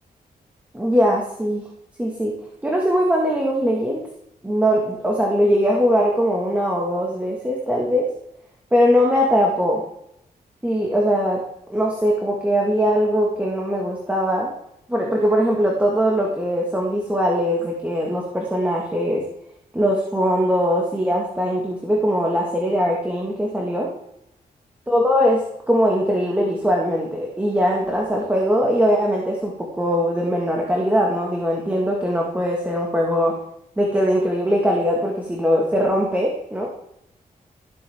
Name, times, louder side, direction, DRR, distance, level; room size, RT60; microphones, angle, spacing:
voice 1, 0.7-1.7 2.0-2.3 2.6-4.0 4.4-8.1 8.7-9.8 10.6-11.4 11.7-14.5 14.9-19.2 19.7-23.9 24.9-33.4 33.8-36.7, equal, 10° right, -2 dB, 1.8 m, -21 dB
14.0 x 8.5 x 3.6 m, 0.78 s
wide cardioid pair, 135°, 15 cm